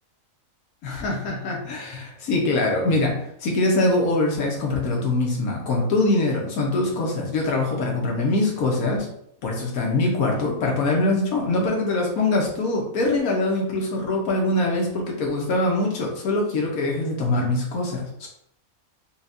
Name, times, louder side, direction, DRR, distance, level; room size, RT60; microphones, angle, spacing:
voice 1, 0.8-9.1 9.4-18.3, left 2 dB, 85° left, 0 dB, 1.4 m, -23 dB
5.6 x 2.4 x 2.6 m, 0.69 s
omnidirectional pair, 1.5 m